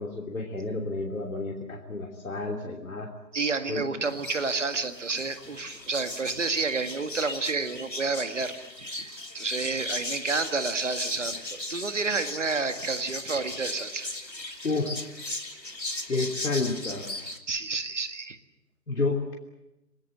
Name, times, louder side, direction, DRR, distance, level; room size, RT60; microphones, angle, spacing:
voice 1, 0.0-3.1 3.7-3.8 14.6-14.9 16.1-17.1 18.9-19.3, left 3 dB, 55° left, 0 dB, 3.2 m, -30 dB
voice 2, 3.3-11.4 11.7-14.1 17.5-18.4, right 4 dB, 45° right, 9 dB, 1.9 m, -30 dB
sound 1, 4.0-17.4, left 2 dB, 90° left, 2.7 m, -37 dB
28.0 x 19.5 x 7.7 m, 0.96 s
figure-of-eight pair, 155°, 49 cm